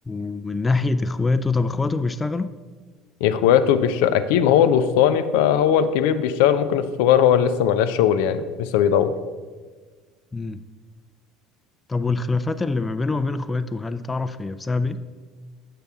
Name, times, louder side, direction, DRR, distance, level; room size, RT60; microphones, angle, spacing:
voice 1, 0.1-2.5 10.3-10.6 11.9-15.0, left 3 dB, 20° left, 11 dB, 0.4 m, -24 dB
voice 2, 3.2-9.1, left 9 dB, 75° left, 11 dB, 0.4 m, -19 dB
6.8 x 6.6 x 3.5 m, 1.4 s
hypercardioid pair, 75°, 0 cm